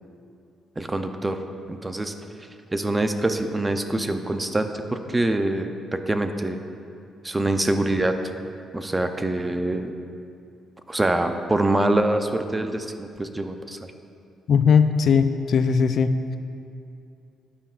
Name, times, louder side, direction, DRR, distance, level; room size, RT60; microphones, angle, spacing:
voice 1, 0.8-1.4 1.7-2.1 2.7-6.6 7.2-8.1 8.7-9.9 10.9-13.8, right 2 dB, 15° right, 7 dB, 0.6 m, -25 dB
voice 2, 14.5-16.4, left 6 dB, 60° left, 9 dB, 0.4 m, -19 dB
12.5 x 9.9 x 2.5 m, 2.5 s
cardioid pair, 90°, 0 cm